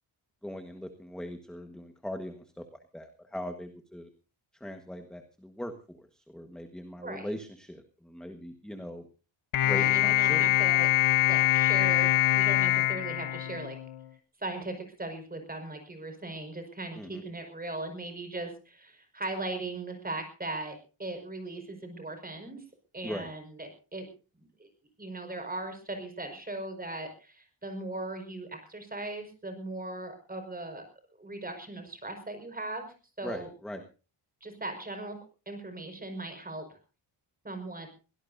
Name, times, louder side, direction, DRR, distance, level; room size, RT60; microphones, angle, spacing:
voice 1, 0.4-4.1 4.5-9.1 9.6-10.4 17.0-17.2 23.0-23.3 33.2-33.8, equal, ahead, 6 dB, 1.4 m, -40 dB
voice 2, 7.0-7.3 9.6-10.9 11.3-13.8 14.4-22.6 22.9-24.1 24.4-24.7 25.0-30.8 31.2-33.5 34.4-35.2 35.4-36.6 37.4-37.9, right 2 dB, 20° right, 6 dB, 5.1 m, -38 dB
sound 1, 9.5-14.0, left 14 dB, 80° left, 1.0 m, -24 dB
23.5 x 17.5 x 2.7 m, 0.34 s
wide cardioid pair, 135°, 49 cm